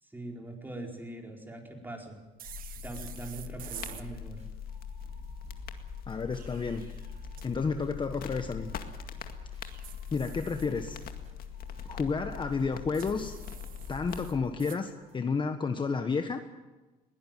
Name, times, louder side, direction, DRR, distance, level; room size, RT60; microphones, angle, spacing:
voice 1, 0.0-2.2 2.8-4.4, right 2 dB, 10° right, 1 dB, 4.6 m, -42 dB
sound 1, 2.4-14.4, left 8 dB, 60° left, 2.1 m, -42 dB
sound 2, 2.4-4.1 6.1-7.5 9.6-11.1 12.9-14.8, right 10 dB, 55° right, 1.3 m, -48 dB
sound 3, 3.6-15.2, right 2 dB, 40° right, 6.1 m, -53 dB
voice 2, 6.1-6.9 7.4-8.7 10.1-11.0 11.8-13.4 13.9-16.4, left 4 dB, 30° left, 7 dB, 1.4 m, -31 dB
21.0 x 17.5 x 9.2 m, 1.2 s
cardioid pair, 110°, 17 cm